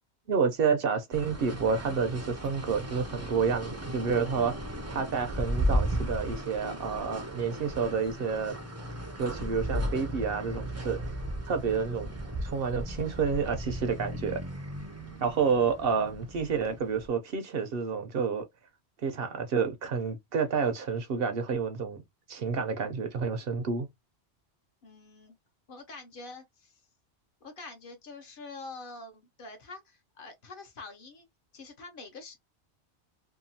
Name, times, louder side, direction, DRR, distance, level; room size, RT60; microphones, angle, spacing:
voice 1, 0.3-8.6 9.2-11.0 11.5-12.1 12.4-14.4 15.2-18.4 19.0-22.0 22.3-23.9, right 5 dB, 65° right, 0.7 m, -29 dB
sound 1, 1.1-17.1, equal, 25° right, 0.4 m, -35 dB
voice 2, 24.8-25.4 25.7-26.8 27.4-31.3 31.5-32.4, left 3 dB, 55° left, 0.8 m, -46 dB
2.8 x 2.3 x 2.6 m
omnidirectional pair, 1.2 m